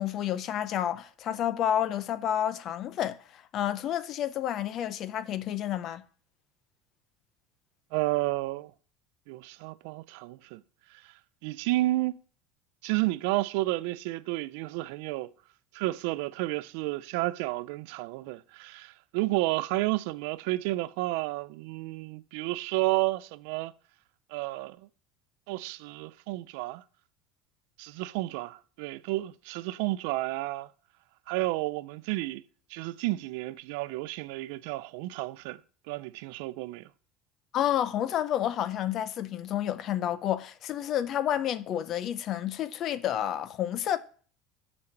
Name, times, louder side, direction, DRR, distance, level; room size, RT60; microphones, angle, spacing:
voice 1, 0.0-6.0 37.5-44.0, left 10 dB, 35° left, 0.4 m, -30 dB
voice 2, 7.9-8.7 9.3-10.6 11.0-11.1 11.4-12.2 12.8-15.3 15.7-23.7 24.3-24.8 25.5-26.8 27.8-30.7 31.3-32.4 32.7-35.6 35.9-36.9, right 19 dB, 65° right, 0.3 m, -31 dB
5.6 x 5.2 x 6.5 m
cardioid pair, 180°, 0 cm